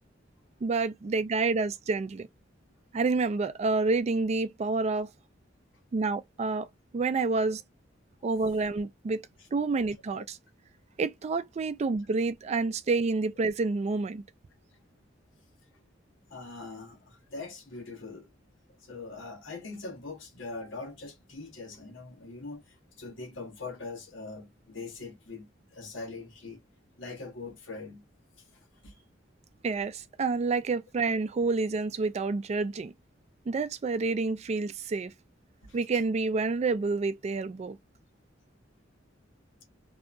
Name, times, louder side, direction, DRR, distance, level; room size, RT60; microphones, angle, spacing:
voice 1, 0.6-2.3 2.9-5.1 5.9-6.7 6.9-7.6 8.2-9.2 9.5-10.4 11.0-14.2 29.6-32.9 33.5-35.1 35.7-37.8, right 3 dB, 35° right, 0.3 m, -28 dB
voice 2, 16.3-18.3 18.8-22.6 23.0-26.6 27.0-28.0 28.5-29.1 35.6-35.8, left 3 dB, 80° left, 1.1 m, -42 dB
2.7 x 2.2 x 2.4 m
head